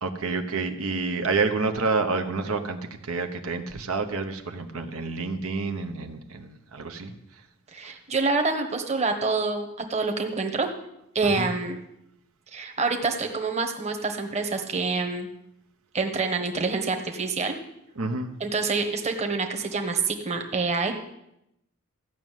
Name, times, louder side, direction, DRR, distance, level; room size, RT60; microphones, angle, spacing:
voice 1, 0.0-2.8 3.1-7.1 11.2-11.4 18.0-18.3, right 4 dB, 75° right, 6 dB, 1.1 m, -28 dB
voice 2, 7.7-10.7 11.1-11.8 12.5-15.3 15.9-17.6 18.4-21.0, right 4 dB, 30° right, 4 dB, 1.2 m, -27 dB
14.5 x 6.4 x 9.2 m, 0.82 s
head